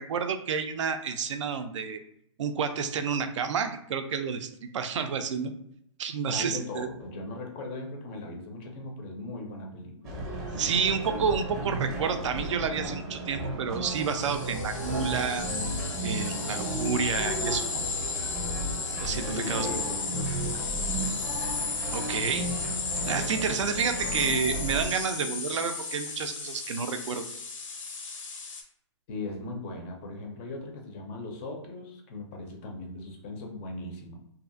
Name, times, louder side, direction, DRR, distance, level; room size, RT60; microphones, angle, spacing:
voice 1, 0.0-2.0 2.4-5.5 6.0-6.9 10.6-15.5 16.0-17.8 19.0-19.7 21.9-22.5 23.1-27.3, right 6 dB, 70° right, 8 dB, 0.4 m, -30 dB
voice 2, 6.3-10.2 19.3-21.4 29.1-34.2, left 2 dB, 25° left, 2 dB, 0.4 m, -39 dB
sound 1, 10.0-24.9, right 1 dB, 20° right, 0.6 m, -34 dB
sound 2, 13.9-28.6, left 4 dB, 90° left, 0.6 m, -35 dB
2.6 x 2.4 x 2.5 m, 0.74 s
hypercardioid pair, 155°, 16 cm